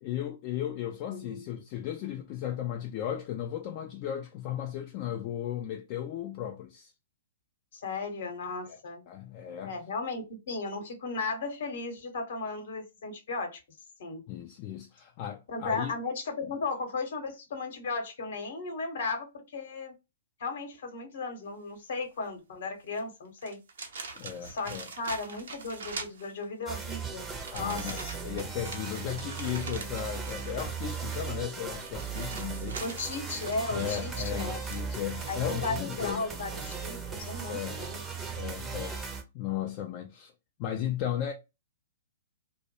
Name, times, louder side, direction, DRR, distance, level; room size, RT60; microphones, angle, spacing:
voice 1, 0.0-6.9 8.7-8.8 9.1-9.7 14.3-15.9 24.2-24.9 27.5-32.8 33.7-36.3 37.5-37.8 38.4-40.3 40.6-41.3, left 10 dB, 35° left, 0.3 m, -35 dB
voice 2, 1.1-1.5 7.7-9.0 9.6-13.6 14.0-14.2 15.5-19.9 20.4-23.6 24.4-27.3 27.6-28.2 32.8-34.6 35.3-38.0, left 3 dB, 55° left, 0.8 m, -35 dB
sound 1, 22.9-23.0 23.4-26.7 27.3-35.8, right 4 dB, 60° right, 0.5 m, -44 dB
sound 2, 26.7-39.2, right 6 dB, 15° right, 0.5 m, -37 dB
2.1 x 2.0 x 2.9 m
figure-of-eight pair, 110°, 0 cm